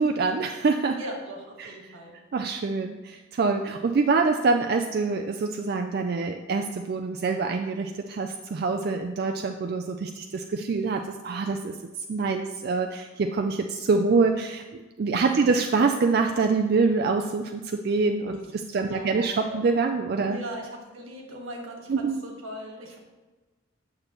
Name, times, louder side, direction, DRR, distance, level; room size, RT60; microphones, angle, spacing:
voice 1, 0.0-1.0 1.6-1.7 2.3-11.7 12.1-14.6 15.0-20.4 21.9-22.2, right 4 dB, 50° right, 5 dB, 0.3 m, -25 dB
voice 2, 1.0-2.2 15.2-15.4 18.3-18.5 18.9-19.6 20.3-23.0, right 1 dB, 85° right, 0 dB, 1.6 m, -39 dB
8.8 x 6.5 x 3.0 m, 1.2 s
head